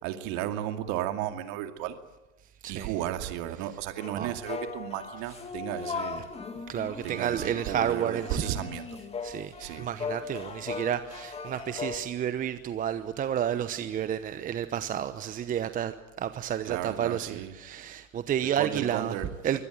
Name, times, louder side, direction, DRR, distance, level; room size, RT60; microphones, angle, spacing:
voice 1, 0.0-2.0 2.7-6.3 7.0-8.9 9.6-9.9 16.6-17.5 18.4-19.3, right 12 dB, 45° right, 7 dB, 2.4 m, -34 dB
voice 2, 2.6-2.9 4.2-4.4 6.7-8.5 9.2-19.2 19.4-19.6, right 9 dB, 20° right, 12 dB, 0.9 m, -31 dB
sound 1, 4.0-12.0, left 5 dB, 15° left, 2.1 m, -38 dB
24.0 x 18.0 x 9.1 m, 1.1 s
hypercardioid pair, 110°, 40 cm